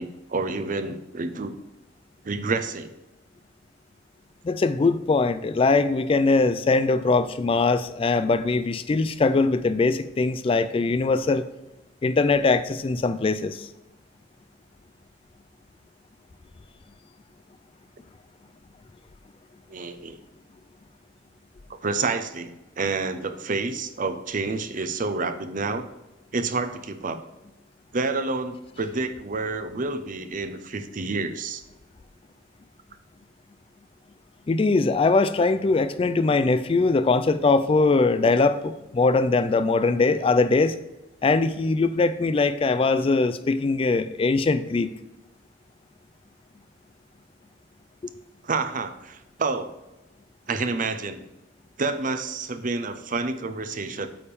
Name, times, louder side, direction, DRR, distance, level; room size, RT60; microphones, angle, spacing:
voice 1, 0.0-1.5 2.2-2.9 19.7-20.2 21.8-25.9 26.3-27.2 27.9-31.6 48.4-49.7 50.5-51.2 51.8-54.1, right 3 dB, 45° right, 9 dB, 0.6 m, -29 dB
voice 2, 4.4-11.4 12.0-13.7 34.5-40.8 41.2-44.9, left 3 dB, 30° left, 12 dB, 0.3 m, -21 dB
8.6 x 3.6 x 6.8 m, 0.97 s
head